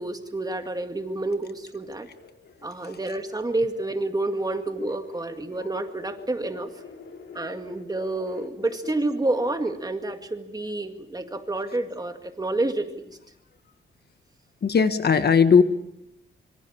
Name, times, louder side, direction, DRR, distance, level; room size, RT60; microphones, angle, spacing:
voice 1, 0.0-2.1 2.6-6.7 7.3-13.2, right 2 dB, 20° right, 6 dB, 2.0 m, -29 dB
sound 1, 0.8-9.5, left 5 dB, 75° left, 3.6 m, -47 dB
voice 2, 14.6-15.6, left 6 dB, 55° left, 10 dB, 1.4 m, -19 dB
25.5 x 24.5 x 7.3 m, 0.83 s
wide cardioid pair, 140°, 20 cm